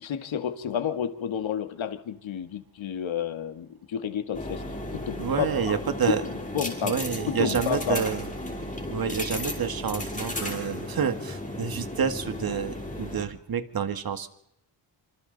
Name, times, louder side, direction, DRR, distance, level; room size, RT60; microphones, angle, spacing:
voice 1, 0.0-4.6 4.9-5.5 6.1-6.2 6.5-7.0 7.3-8.0, left 8 dB, 70° left, 9 dB, 1.8 m, -30 dB
sound 1, 4.3-13.2, left 1 dB, 15° left, 5.5 m, -34 dB
voice 2, 5.2-6.2 6.8-8.2 8.9-14.3, right 7 dB, 45° right, 10 dB, 1.8 m, -28 dB
26.5 x 26.0 x 4.0 m, 0.80 s
cardioid pair, 95°, 48 cm